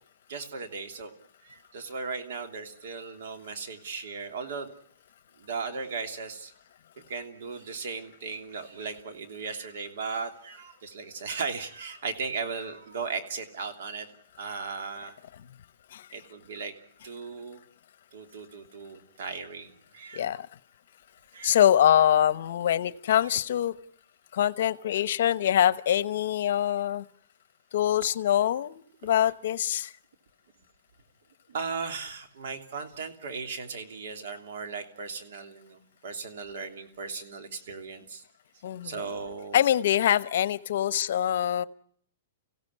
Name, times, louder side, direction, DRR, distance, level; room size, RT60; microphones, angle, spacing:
voice 1, 0.3-1.1 1.4-4.7 5.4-6.5 7.1-14.1 14.4-15.2 16.1-16.7 17.0-17.6 18.1-20.4 21.3-21.6 29.0-29.1 31.5-38.2 38.8-39.6, right 5 dB, 65° right, 7 dB, 3.1 m, -37 dB
voice 2, 20.1-20.5 21.4-23.8 24.3-27.0 27.7-29.9 38.6-39.0 39.5-41.6, left 10 dB, 65° left, 17 dB, 0.9 m, -24 dB
25.0 x 16.5 x 9.5 m, 0.64 s
hypercardioid pair, 160°, 0 cm